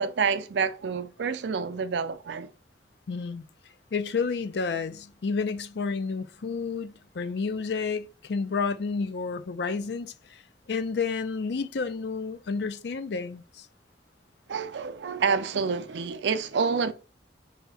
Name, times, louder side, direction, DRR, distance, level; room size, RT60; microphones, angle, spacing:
voice 1, 0.0-2.5 14.5-16.9, right 5 dB, 75° right, 0.4 m, -28 dB
voice 2, 3.1-3.5 3.9-10.4 10.7-13.7, left 4 dB, 65° left, 0.4 m, -30 dB
4.0 x 2.8 x 3.5 m
head